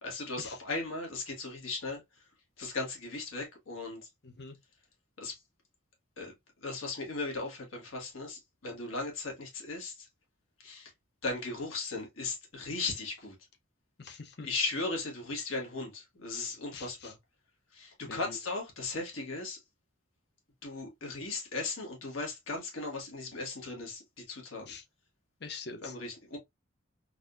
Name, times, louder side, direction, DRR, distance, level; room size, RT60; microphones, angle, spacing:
voice 1, 0.0-2.0 2.6-4.1 5.2-5.4 6.2-6.3 6.6-10.1 10.6-10.9 11.2-13.4 14.4-17.2 17.7-19.6 20.6-24.8 25.8-26.4, left 3 dB, 90° left, 1.7 m, -37 dB
voice 2, 4.2-4.6 14.0-14.5 16.7-17.1 18.0-18.4 24.6-24.8 25.4-25.9, left 4 dB, 55° left, 0.7 m, -44 dB
4.0 x 2.6 x 2.5 m
head